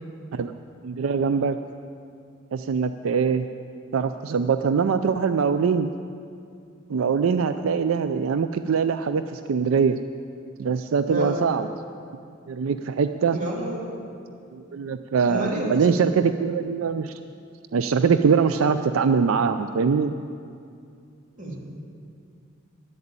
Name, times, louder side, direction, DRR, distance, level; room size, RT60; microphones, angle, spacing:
voice 1, 0.8-1.6 2.5-3.5 3.9-5.9 6.9-10.0 10.6-11.7 12.5-13.4 14.5-17.2 17.7-20.2, right 6 dB, 85° right, 10 dB, 0.4 m, -23 dB
voice 2, 11.1-11.4 13.3-13.8 15.3-15.8 21.4-21.6, right 1 dB, 40° right, -4 dB, 3.0 m, -29 dB
11.5 x 8.0 x 8.8 m, 2.4 s
head